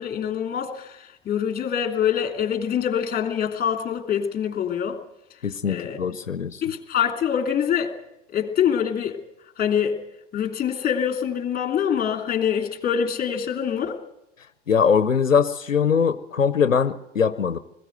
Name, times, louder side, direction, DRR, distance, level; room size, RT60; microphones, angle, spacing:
voice 1, 0.0-5.0 5.6-6.0 6.6-7.9 8.3-9.2 9.6-10.0 10.3-14.0, left 8 dB, 25° left, 4 dB, 2.9 m, -25 dB
voice 2, 5.4-6.6 14.7-17.6, left 6 dB, 90° left, 13 dB, 0.7 m, -21 dB
21.0 x 15.5 x 8.0 m, 0.87 s
figure-of-eight pair, 85°, 38 cm